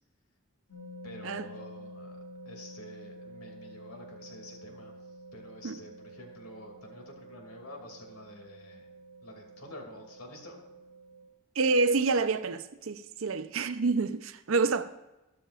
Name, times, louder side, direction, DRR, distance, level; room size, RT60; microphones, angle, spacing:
sound 1, 0.7-11.3, equal, 70° left, 2.5 m, -49 dB
voice 1, 1.0-2.2 2.4-5.0 5.3-8.9 9.2-10.6, left 1 dB, 85° left, 2.6 m, -48 dB
voice 2, 11.6-14.8, right 4 dB, 65° right, 0.6 m, -28 dB
13.0 x 12.5 x 2.5 m
head